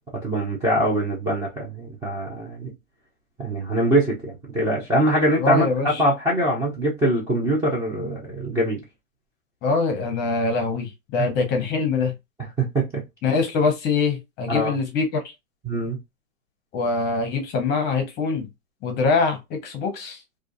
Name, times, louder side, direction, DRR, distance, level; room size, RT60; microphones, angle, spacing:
voice 1, 0.2-2.7 3.4-8.8 11.2-11.3 12.6-12.8 14.5-14.7 15.7-16.0, right 1 dB, 10° right, 0.4 m, -23 dB
voice 2, 5.4-6.0 9.6-12.1 13.2-15.2 16.7-18.4 18.8-20.2, left 4 dB, 25° left, 0.7 m, -23 dB
2.4 x 2.3 x 2.5 m
hypercardioid pair, 125°, 41 cm